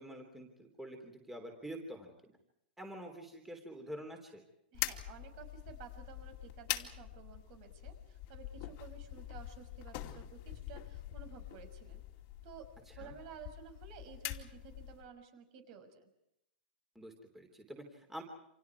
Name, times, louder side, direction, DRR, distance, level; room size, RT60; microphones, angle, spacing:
voice 1, 0.0-2.4 2.8-4.4 12.9-13.2 16.9-18.2, right 1 dB, 5° right, 3 dB, 3.3 m, -47 dB
sound 1, 4.7-15.1, left 15 dB, 40° left, 2.6 m, -44 dB
voice 2, 4.7-12.0 12.4-12.7 13.0-16.1, right 7 dB, 45° right, 7 dB, 5.8 m, -53 dB
29.5 x 27.5 x 4.8 m, 0.78 s
supercardioid pair, 155°, 6 cm